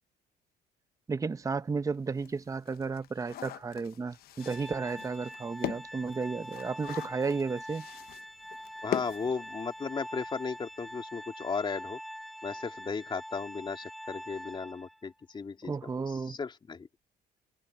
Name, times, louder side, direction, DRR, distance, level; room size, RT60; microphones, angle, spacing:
voice 1, 1.1-7.9 15.6-16.4, right 4 dB, 20° right, 0.8 m, -33 dB
sound 1, 1.4-1.5 1.9-10.0 10.3-10.4 10.7-10.9, left 13 dB, 65° left, 1.0 m, -41 dB
Organ, 4.4-15.1, equal, ahead, 7.9 m, -44 dB
voice 2, 8.8-12.0 12.4-15.7 16.1-16.9, left 5 dB, 30° left, 3.1 m, -35 dB
cardioid pair, 110°, 17 cm